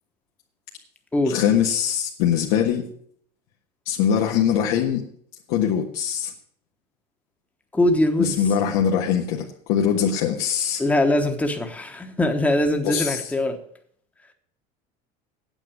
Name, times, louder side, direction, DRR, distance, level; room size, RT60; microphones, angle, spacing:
voice 1, 1.3-2.8 3.9-5.0 5.5-6.3 8.2-10.8 12.8-13.2, left 8 dB, 80° left, 0 dB, 1.5 m, -22 dB
voice 2, 7.7-8.4 10.8-13.6, left 1 dB, 5° left, 6 dB, 1.1 m, -22 dB
8.9 x 8.1 x 8.6 m, 0.62 s
cardioid pair, 165°, 19 cm